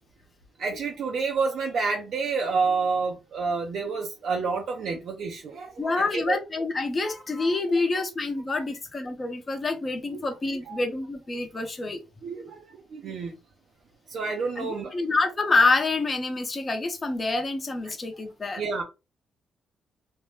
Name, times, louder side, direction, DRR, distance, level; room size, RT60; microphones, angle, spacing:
voice 1, 0.6-6.4 10.7-10.8 12.2-13.4 14.1-15.0 18.6-18.8, right 4 dB, 65° right, 0.5 m, -29 dB
voice 2, 5.8-12.0 14.6-18.6, left 3 dB, 30° left, 0.8 m, -27 dB
2.6 x 2.2 x 3.1 m
cardioid pair, 90°, 0 cm